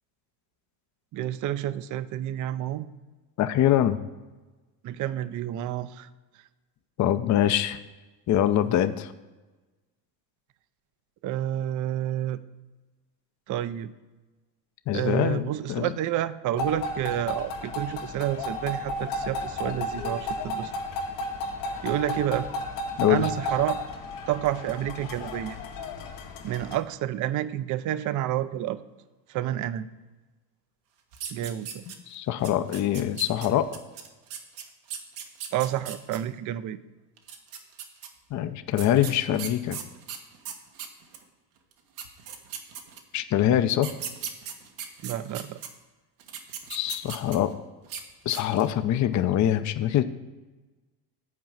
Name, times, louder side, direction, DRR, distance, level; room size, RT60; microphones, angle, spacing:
voice 1, 1.1-2.9 4.8-6.1 11.2-12.4 13.5-13.9 14.9-20.7 21.8-22.5 23.1-23.8 24.3-25.6 26.4-28.8 29.3-29.9 31.3-31.8 35.5-36.8 45.0-45.6, right 12 dB, 40° right, 15 dB, 0.5 m, -29 dB
voice 2, 3.4-4.0 7.0-7.8 8.3-9.1 14.9-15.9 23.0-23.2 32.1-33.7 38.3-39.8 43.1-43.9 46.7-47.5 48.3-50.0, left 11 dB, 35° left, 10 dB, 0.6 m, -24 dB
sound 1, 16.6-26.7, left 1 dB, 80° left, 2.0 m, -33 dB
sound 2, 31.1-32.1 32.4-36.2 37.2-38.1 38.8-41.2 41.7-41.8 42.0-43.2 43.7-45.7 46.2-47.5 47.8-48.0 48.3-48.7, right 8 dB, 80° right, 1.4 m, -38 dB
9.6 x 4.7 x 7.4 m, 1.2 s
supercardioid pair, 85°, 49 cm